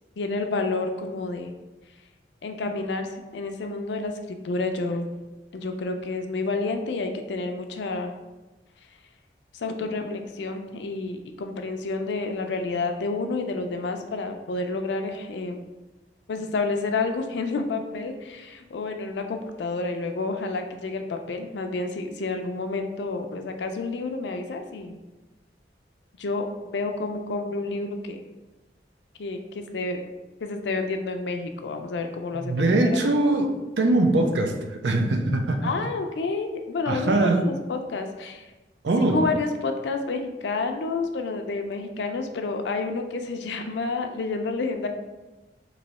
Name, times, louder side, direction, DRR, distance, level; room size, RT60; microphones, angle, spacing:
voice 1, 0.2-1.5 2.4-5.1 5.5-8.1 9.5-15.6 16.3-25.0 26.2-28.2 29.2-30.0 30.4-32.6 32.9-33.0 35.6-38.5 39.0-44.9, left 3 dB, 80° left, 5 dB, 0.4 m, -29 dB
voice 2, 32.3-35.7 36.9-37.5 38.8-39.2, right 2 dB, 80° right, 4 dB, 0.5 m, -22 dB
3.1 x 2.7 x 4.1 m, 1.1 s
head